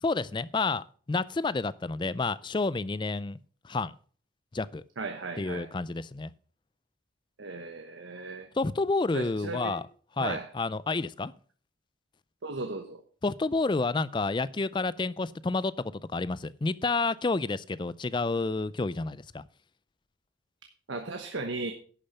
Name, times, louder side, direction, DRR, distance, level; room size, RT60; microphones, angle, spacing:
voice 1, 0.0-3.4 3.6-3.9 4.5-4.8 5.4-6.3 8.5-9.8 10.2-11.3 13.2-19.4, left 3 dB, 25° left, 18 dB, 0.4 m, -30 dB
voice 2, 5.0-5.7 7.4-8.5 9.1-9.8 10.2-10.5 12.4-13.0 20.9-21.7, right 3 dB, 75° right, 5 dB, 1.1 m, -36 dB
11.0 x 6.9 x 5.5 m, 0.43 s
head